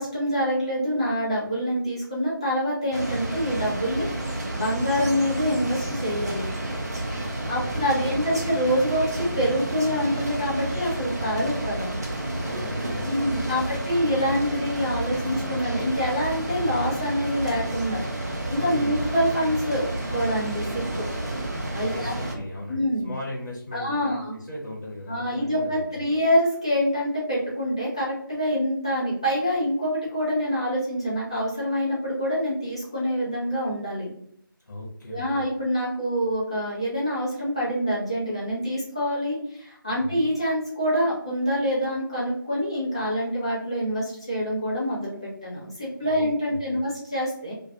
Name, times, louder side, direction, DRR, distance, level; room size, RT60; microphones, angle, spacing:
voice 1, 0.0-6.6 7.5-11.9 13.0-18.0 18.5-19.9 20.1-21.1 21.7-22.2 22.7-23.1 23.7-24.3 25.1-34.1 35.1-47.5, equal, 15° left, -7 dB, 0.5 m, -26 dB
sound 1, 2.9-22.4, right 1 dB, 45° right, 0.5 m, -30 dB
voice 2, 7.0-8.1 8.4-8.5 12.4-13.8 18.6-19.0 21.8-26.2 34.6-35.4 40.0-40.2 46.0-46.8, left 1 dB, 55° left, -4 dB, 0.8 m, -38 dB
2.3 x 2.2 x 2.8 m, 0.68 s
figure-of-eight pair, 165°, 12 cm